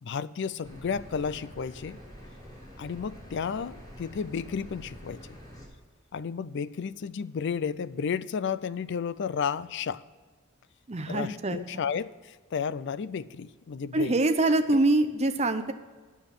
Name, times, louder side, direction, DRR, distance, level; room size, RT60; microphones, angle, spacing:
voice 1, 0.0-2.0 2.8-5.4 6.1-10.0 11.1-14.2, left 6 dB, 55° left, 17 dB, 0.4 m, -32 dB
sound 1, 0.6-5.7, equal, 20° left, 3.4 m, -47 dB
voice 2, 10.9-11.6 13.9-15.7, right 2 dB, 30° right, 8 dB, 0.7 m, -24 dB
9.6 x 7.1 x 7.1 m, 1.4 s
head